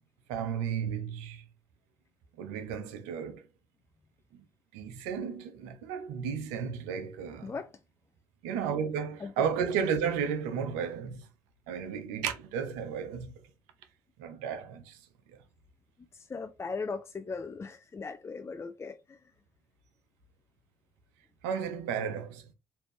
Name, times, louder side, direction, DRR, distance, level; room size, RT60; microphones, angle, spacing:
voice 1, 0.3-1.4 2.4-3.4 4.3-4.4 4.7-7.5 8.4-11.3 11.7-13.3 14.2-15.0 21.4-22.5, right 7 dB, 75° right, 0.6 m, -33 dB
voice 2, 9.2-9.5 16.1-19.2, left 4 dB, 25° left, 0.4 m, -38 dB
3.3 x 2.6 x 3.1 m
hypercardioid pair, 45°, 10 cm